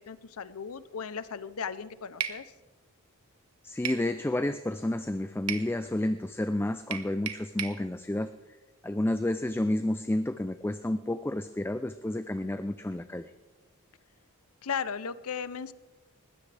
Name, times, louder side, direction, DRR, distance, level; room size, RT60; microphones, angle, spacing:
voice 1, 0.1-2.4 14.6-15.7, left 6 dB, 75° left, 16 dB, 0.7 m, -36 dB
sound 1, 2.2-2.4 3.9-4.1 5.5-5.7 6.9-7.8, right 9 dB, 85° right, 1.2 m, -34 dB
voice 2, 3.6-8.3 8.8-13.3, left 1 dB, 10° left, 10 dB, 0.4 m, -30 dB
20.5 x 16.0 x 3.4 m, 1.2 s
head